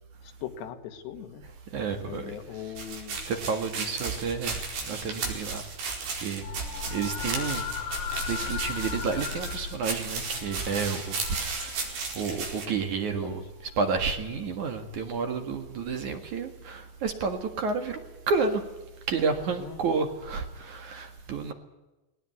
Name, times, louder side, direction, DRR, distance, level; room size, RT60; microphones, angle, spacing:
voice 1, 0.2-1.4 2.1-3.2 13.2-13.4 19.6-19.8, left 10 dB, 80° left, 7 dB, 3.9 m, -40 dB
voice 2, 1.7-2.7 3.2-4.6 4.9-6.4 6.9-13.4 13.8-18.6 19.1-21.5, right 5 dB, 55° right, 6 dB, 2.8 m, -31 dB
sound 1, 2.8-12.6, right 4 dB, 80° right, 6.7 m, -35 dB
sound 2, 6.4-12.2 13.4-13.9 15.7-15.8, left 7 dB, 65° left, 2.9 m, -37 dB
20.0 x 18.5 x 9.6 m, 1.0 s
omnidirectional pair, 4.8 m